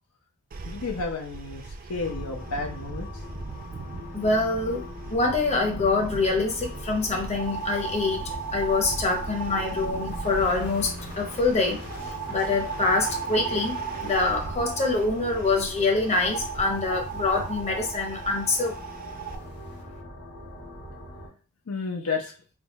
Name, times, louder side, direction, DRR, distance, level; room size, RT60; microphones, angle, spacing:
sound 1, 0.5-19.4, right 3 dB, 40° right, 0.4 m, -41 dB
voice 1, 0.6-3.2 21.7-22.3, left 4 dB, 85° left, 1 dB, 0.7 m, -32 dB
sound 2, 2.0-21.3, equal, 55° left, 1.7 m, -41 dB
voice 2, 4.1-4.8 5.1-13.7 14.0-18.8, left 3 dB, 30° left, 2 dB, 0.8 m, -25 dB
sound 3, 7.3-11.2 11.8-15.1 16.2-19.4, right 6 dB, 90° right, 0.8 m, -36 dB
3.5 x 2.3 x 4.1 m, 0.36 s
head